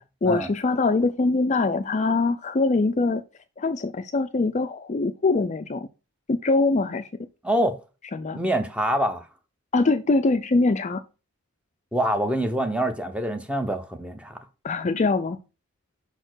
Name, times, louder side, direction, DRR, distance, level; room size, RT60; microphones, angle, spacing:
voice 1, 0.2-3.2 3.6-5.9 6.3-7.1 8.1-8.4 9.7-11.0 14.6-15.4, left 3 dB, 30° left, 0.4 m, -23 dB
voice 2, 7.4-7.8 8.3-9.2 11.9-14.3, right 1 dB, 5° right, 0.7 m, -25 dB
5.5 x 4.3 x 6.2 m
head